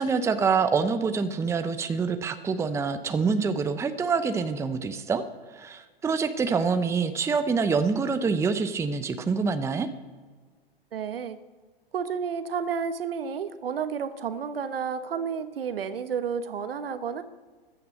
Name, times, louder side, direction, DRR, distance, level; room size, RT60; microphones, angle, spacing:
voice 1, 0.0-5.2 5.5-9.9, right 5 dB, 10° right, 9 dB, 0.7 m, -26 dB
voice 2, 10.9-11.4 11.9-17.2, right 6 dB, 70° right, 12 dB, 1.2 m, -31 dB
15.0 x 10.5 x 6.3 m, 1.5 s
figure-of-eight pair, 105°, 30 cm